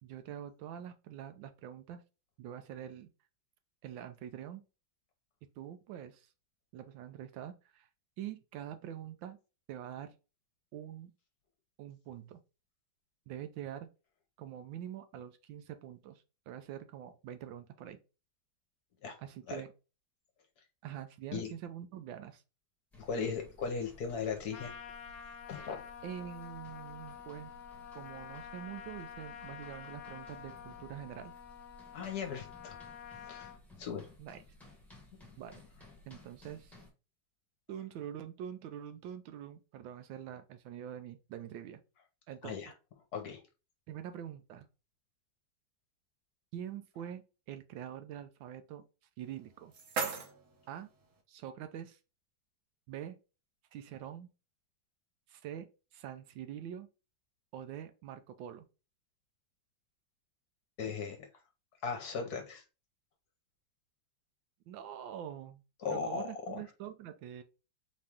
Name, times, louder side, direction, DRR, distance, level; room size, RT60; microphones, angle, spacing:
voice 1, 0.0-2.0 2.4-3.1 3.8-4.6 5.6-6.3 6.7-7.9 8.2-9.4 9.7-10.1 10.7-11.1 11.8-12.4 13.3-13.9 14.4-18.0 19.2-19.7 20.8-22.4 26.0-27.5 27.9-31.3 34.2-34.4 35.4-35.6 36.1-36.8 37.7-41.8 42.3-42.7 43.9-44.7 46.5-47.2 47.5-48.9 49.2-49.7 50.7-50.9 51.3-52.0 52.9-53.2 53.7-54.3 55.3-56.9 57.5-58.7 64.7-65.6 65.9-67.4, right 10 dB, 75° right, 1.3 m, -45 dB
sound 1, 22.9-36.9, left 1 dB, ahead, 1.0 m, -57 dB
voice 2, 23.0-24.7 25.5-25.9 31.9-32.8 33.2-33.5 33.8-34.1 42.4-42.7 43.1-43.4 60.8-61.3 61.8-62.6 65.8-66.6, left 5 dB, 60° left, 1.1 m, -37 dB
Trumpet, 24.5-33.6, left 8 dB, 85° left, 0.7 m, -48 dB
sound 2, 49.2-51.2, right 5 dB, 55° right, 0.9 m, -40 dB
4.2 x 3.1 x 3.5 m
omnidirectional pair, 2.2 m